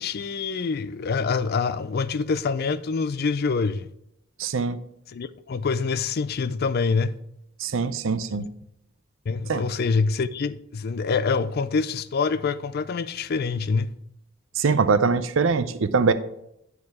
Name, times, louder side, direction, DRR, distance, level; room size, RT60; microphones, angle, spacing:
voice 1, 0.0-3.9 5.1-7.2 8.3-8.5 9.3-13.9, left 4 dB, 50° left, 0.4 m, -26 dB
voice 2, 4.4-4.8 7.6-8.5 9.5-9.6 14.6-16.1, right 4 dB, 75° right, 0.5 m, -22 dB
9.5 x 4.8 x 4.8 m
head